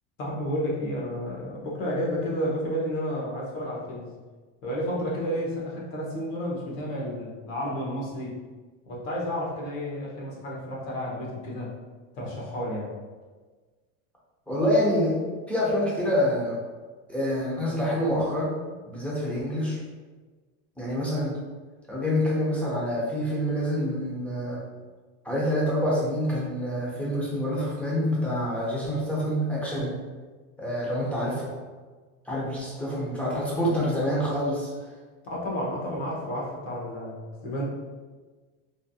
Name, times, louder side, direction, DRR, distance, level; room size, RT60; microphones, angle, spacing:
voice 1, 0.2-4.1 4.6-8.3 8.9-11.7 12.1-12.9 35.3-37.6, equal, 85° left, -4 dB, 1.2 m, -31 dB
voice 2, 14.5-15.1 15.5-16.6 17.1-18.5 18.9-19.8 20.8-21.4 21.9-24.6 25.2-30.0 30.6-31.5 32.3-34.7, equal, 5° left, -6 dB, 0.4 m, -26 dB
3.4 x 2.3 x 2.6 m, 1.4 s
supercardioid pair, 155°, 39 cm